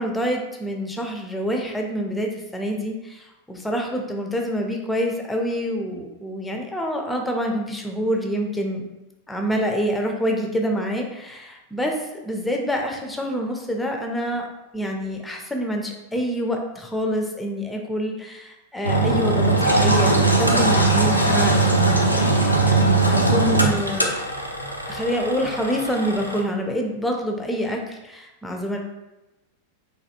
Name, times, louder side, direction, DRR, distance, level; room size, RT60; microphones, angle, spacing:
voice 1, 0.0-8.9 9.3-14.5 14.7-24.1 24.9-28.8, equal, 5° left, 2 dB, 0.5 m, -26 dB
Engine, 18.8-26.4, right 3 dB, 90° left, 0.3 m, -20 dB
3.2 x 2.2 x 2.8 m, 0.99 s
figure-of-eight pair, 90°, 0 cm